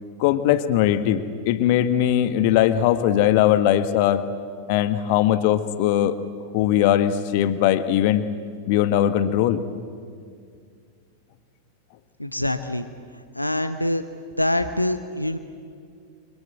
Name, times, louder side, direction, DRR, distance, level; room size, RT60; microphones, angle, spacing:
voice 1, 0.2-4.2 4.7-6.1 6.5-8.3 8.7-9.6, left 11 dB, 50° left, 11 dB, 1.5 m, -20 dB
voice 2, 12.2-12.9 13.3-14.0 14.4-15.4, left 1 dB, 85° left, 10 dB, 1.0 m, -24 dB
29.5 x 24.5 x 8.2 m, 2.2 s
figure-of-eight pair, 90°, 0 cm